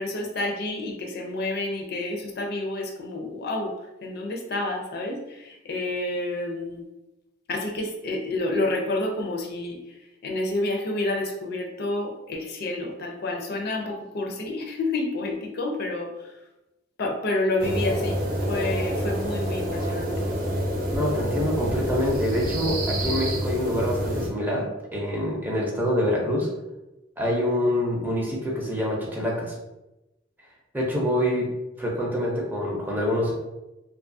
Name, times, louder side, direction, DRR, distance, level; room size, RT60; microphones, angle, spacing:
voice 1, 0.0-3.7 4.0-6.9 7.5-9.8 10.2-16.1 17.0-18.2 18.5-20.2, left 2 dB, 55° left, 2 dB, 0.4 m, -29 dB
sound 1, 17.6-24.3, equal, 50° right, 0.6 m, -27 dB
voice 2, 20.9-26.5 27.2-29.5 30.7-31.5 31.8-33.3, left 1 dB, 10° right, -3 dB, 0.5 m, -26 dB
2.6 x 2.3 x 2.6 m, 0.97 s
head